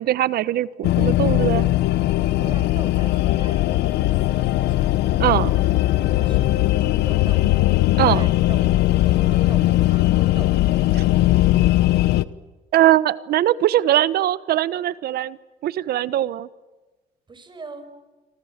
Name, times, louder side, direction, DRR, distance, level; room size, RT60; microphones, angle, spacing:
voice 1, 0.0-1.7 5.2-5.5 8.0-8.2 12.7-15.4 15.6-16.5, right 13 dB, 65° right, 18 dB, 1.1 m, -21 dB
sound 1, 0.8-12.2, left 16 dB, 80° left, 1.1 m, -19 dB
voice 2, 2.3-4.9 6.1-7.5 7.9-8.7 9.0-10.5 17.3-17.9, right 4 dB, 25° right, 9 dB, 5.7 m, -41 dB
28.5 x 25.0 x 7.4 m, 1.2 s
cardioid pair, 110°, 17 cm